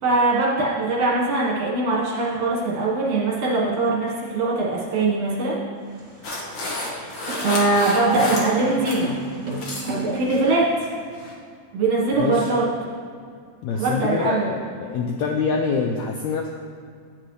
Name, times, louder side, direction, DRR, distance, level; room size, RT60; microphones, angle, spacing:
voice 1, 0.0-5.6 6.9-9.1 9.8-10.9 11.7-12.6 13.8-14.5, right 3 dB, 55° right, -5 dB, 2.3 m, -22 dB
sound 1, 5.8-10.5, right 2 dB, 30° right, 2.9 m, -33 dB
sound 2, 6.2-9.0 9.3-9.9 10.3-10.6 11.1-11.3, left 2 dB, 55° left, 1.3 m, -30 dB
voice 2, 13.6-16.5, left 5 dB, 80° left, 2 dB, 1.6 m, -25 dB
10.5 x 8.8 x 3.2 m, 2.2 s
omnidirectional pair, 3.8 m